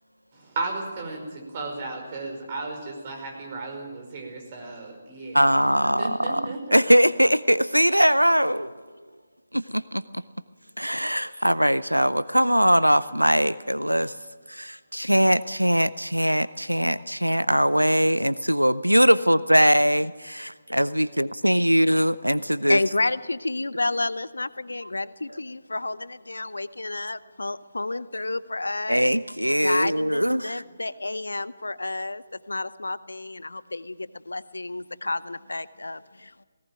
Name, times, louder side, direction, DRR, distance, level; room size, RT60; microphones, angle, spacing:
voice 1, 0.3-5.5 6.0-6.8, right 3 dB, 35° right, 5.2 m, -34 dB
voice 2, 5.3-8.8 9.5-10.2 10.8-14.2 14.5-22.8 28.9-30.6, equal, 90° right, 0.6 m, -21 dB
voice 3, 22.7-29.1 29.6-36.4, left 2 dB, 70° left, 0.7 m, -30 dB
18.5 x 18.0 x 9.0 m
figure-of-eight pair, 145°, 0 cm